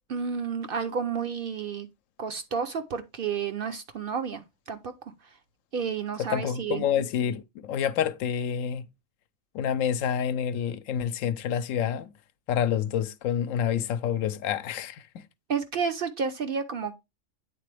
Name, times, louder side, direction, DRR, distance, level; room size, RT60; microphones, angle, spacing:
voice 1, 0.1-1.9 2.2-4.4 4.7-5.1 5.7-6.8 15.5-17.0, right 6 dB, 60° right, 0.6 m, -31 dB
voice 2, 6.2-8.8 9.5-12.1 12.5-15.2, left 8 dB, 80° left, 0.9 m, -28 dB
8.5 x 3.7 x 3.2 m
omnidirectional pair, 1.3 m